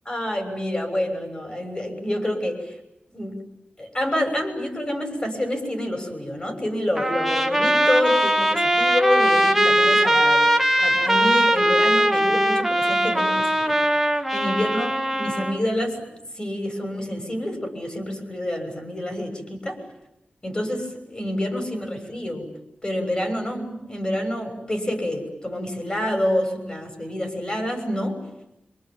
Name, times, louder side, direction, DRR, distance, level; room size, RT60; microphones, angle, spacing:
voice 1, 0.1-2.7 3.1-3.4 3.8-10.5 10.8-13.8 14.3-16.1 16.4-19.8 20.4-22.5 22.8-28.2, left 1 dB, 25° left, 5 dB, 6.7 m, -27 dB
Trumpet, 7.0-15.6, right 1 dB, 5° right, 1.7 m, -20 dB
26.0 x 25.0 x 9.1 m, 0.85 s
wide cardioid pair, 95°, 3 cm